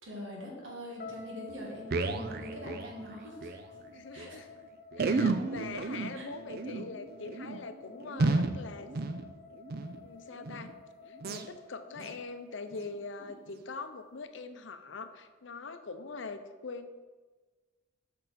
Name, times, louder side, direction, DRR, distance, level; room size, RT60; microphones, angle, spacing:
voice 1, 0.0-3.6 4.1-4.4 6.1-6.2, equal, 75° right, -2 dB, 2.2 m, -43 dB
sound 1, 1.0-13.1, left 5 dB, 45° left, 1.7 m, -52 dB
sound 2, 1.1-1.2 1.5-3.6 3.9-4.0 4.2-4.3 4.9-10.0 10.4-10.7 11.2-11.5 12.0-12.2 12.7-12.9 13.5-13.6, right 3 dB, 50° right, 0.5 m, -33 dB
voice 2, 3.9-4.5 4.9-8.9 10.0-10.7 11.1-16.9, left 4 dB, 70° left, 9 dB, 0.6 m, -43 dB
8.3 x 5.4 x 4.2 m, 1.3 s
head